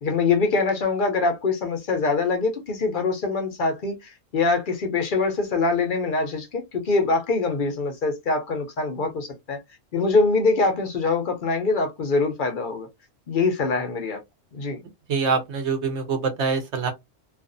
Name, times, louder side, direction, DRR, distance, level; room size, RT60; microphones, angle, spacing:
voice 1, 0.0-9.6 9.9-12.9 13.3-14.2 14.5-14.8, left 3 dB, 50° left, 0.7 m, -24 dB
voice 2, 15.1-16.9, right 5 dB, 65° right, 0.8 m, -24 dB
2.5 x 2.3 x 2.4 m
omnidirectional pair, 1.4 m